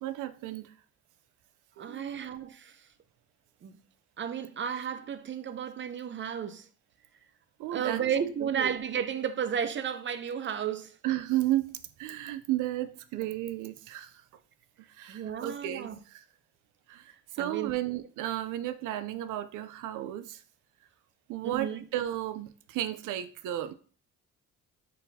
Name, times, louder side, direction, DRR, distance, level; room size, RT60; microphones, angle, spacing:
voice 1, 0.0-0.7 1.8-2.3 7.6-8.0 8.4-8.7 11.0-14.1 15.0-16.2 16.9-20.4 21.3-23.7, right 13 dB, 85° right, 0.5 m, -33 dB
voice 2, 1.8-2.8 3.6-3.8 4.2-6.7 7.7-11.0 15.1-16.0 17.4-17.7 21.4-21.8, right 8 dB, 40° right, 0.5 m, -33 dB
4.2 x 4.0 x 2.7 m
cardioid pair, 90°, 30 cm